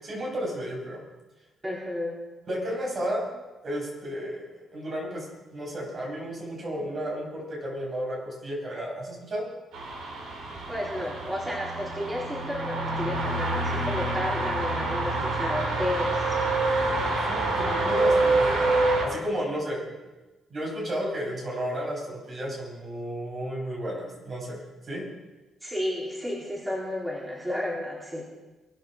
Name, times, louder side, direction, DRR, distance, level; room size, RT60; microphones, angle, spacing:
voice 1, 0.0-1.0 2.5-3.3 3.6-9.5 17.3-18.7 19.0-19.9 20.5-25.1, equal, 45° right, -2 dB, 7.3 m, -33 dB
voice 2, 1.6-2.2 10.7-16.4 25.6-28.2, left 1 dB, 10° right, -5 dB, 4.1 m, -32 dB
sound 1, 9.7-19.1, right 2 dB, 75° right, 3.9 m, -26 dB
22.0 x 8.5 x 6.8 m, 1.1 s
cardioid pair, 90°, 0 cm